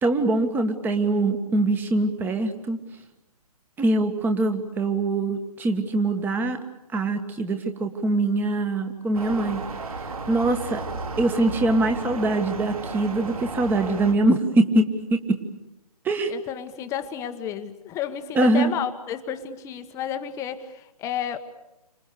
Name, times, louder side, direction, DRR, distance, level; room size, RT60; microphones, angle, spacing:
voice 1, 0.0-2.8 3.8-6.6 6.9-9.6 10.3-10.8 11.2-15.4 16.1-16.3 18.4-18.7, right 2 dB, 10° right, 7 dB, 1.7 m, -23 dB
sound 1, 9.1-14.1, right 3 dB, 65° right, 4.2 m, -34 dB
voice 2, 16.3-21.4, left 9 dB, 15° left, 8 dB, 1.3 m, -31 dB
29.5 x 26.0 x 6.8 m, 0.94 s
figure-of-eight pair, 140°, 20 cm